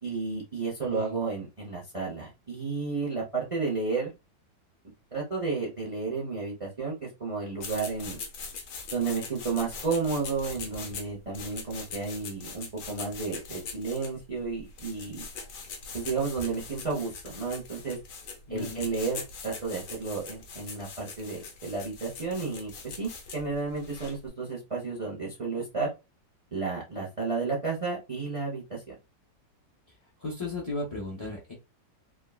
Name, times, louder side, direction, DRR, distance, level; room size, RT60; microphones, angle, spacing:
voice 1, 0.0-4.1 5.1-8.2 8.9-15.2 15.9-18.0 18.5-25.9 26.5-28.8, right 4 dB, 30° right, -2 dB, 0.6 m, -32 dB
sound 1, 7.6-24.3, left 4 dB, 75° left, 1.4 m, -42 dB
voice 2, 18.5-18.8 30.2-31.5, left 2 dB, 35° left, -4 dB, 0.5 m, -35 dB
3.5 x 2.3 x 2.3 m, 0.25 s
omnidirectional pair, 1.9 m